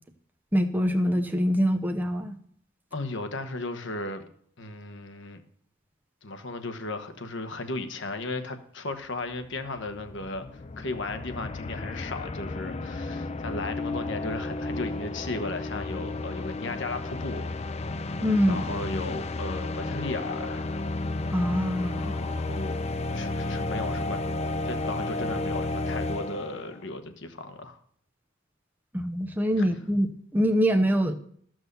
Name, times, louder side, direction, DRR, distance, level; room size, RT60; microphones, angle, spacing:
voice 1, 0.5-2.4 18.2-18.6 21.3-22.1 28.9-31.1, equal, 10° right, 0.7 m, -24 dB
voice 2, 2.9-4.2 4.6-5.4 6.2-17.8 18.5-20.8 21.9-22.8 23.1-24.2 24.6-27.8 29.6-29.7, left 2 dB, 60° left, 1.2 m, -35 dB
sound 1, 9.0-9.1 9.3-26.8, left 2 dB, 30° left, 0.5 m, -32 dB
13.5 x 6.2 x 6.8 m
head